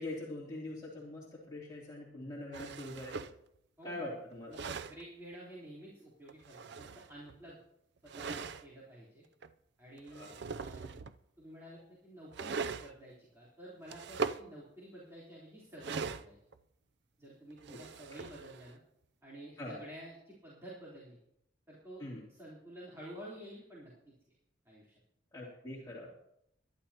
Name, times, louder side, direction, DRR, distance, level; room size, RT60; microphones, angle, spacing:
voice 1, 0.0-3.1 3.8-4.5 10.1-10.3 17.7-17.8 19.6-19.8 22.0-22.2 25.3-26.1, left 1 dB, 20° left, -7 dB, 3.1 m, -43 dB
sound 1, 2.5-3.4 4.3-5.0 6.3-7.4 8.1-8.6 9.4-9.5 10.0-11.2 12.3-12.9 13.9-14.4 15.8-16.6 17.5-18.7, right 5 dB, 60° right, 0.5 m, -40 dB
voice 2, 4.9-7.6 8.0-9.2 9.8-11.0 11.4-16.4 17.2-18.8 19.2-21.2 21.7-22.0 22.3-24.1 24.7-24.9, right 1 dB, 15° right, -7 dB, 3.7 m, -51 dB
23.0 x 11.5 x 2.9 m, 0.78 s
head